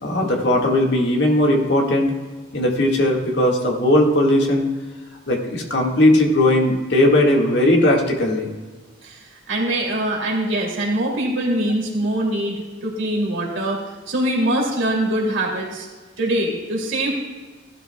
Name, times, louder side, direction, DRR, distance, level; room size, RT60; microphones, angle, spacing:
voice 1, 0.0-2.1 2.5-4.7 5.3-8.5, left 1 dB, 60° left, 0 dB, 1.7 m, -18 dB
voice 2, 9.0-13.8 14.1-15.9 16.2-17.1, right 1 dB, 80° right, -2 dB, 2.6 m, -23 dB
15.5 x 12.0 x 2.3 m, 1.4 s
head